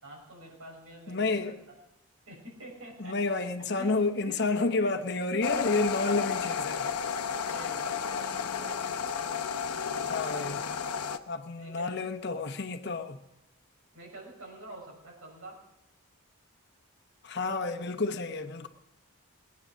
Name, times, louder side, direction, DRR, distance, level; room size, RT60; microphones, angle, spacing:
voice 1, 0.0-1.5 2.3-3.2 3.8-3.9 4.2-4.4 4.8-4.9 5.3-5.5 7.3-8.8 9.8-10.5 11.6-12.1 13.9-15.6, right 1 dB, 70° right, 5.7 m, -47 dB
voice 2, 1.1-1.6 3.0-6.9 10.1-10.6 11.3-13.2 17.2-18.7, left 3 dB, 50° left, 1.0 m, -30 dB
sound 1, 5.4-11.2, left 6 dB, 90° left, 0.8 m, -32 dB
20.0 x 9.4 x 6.3 m
head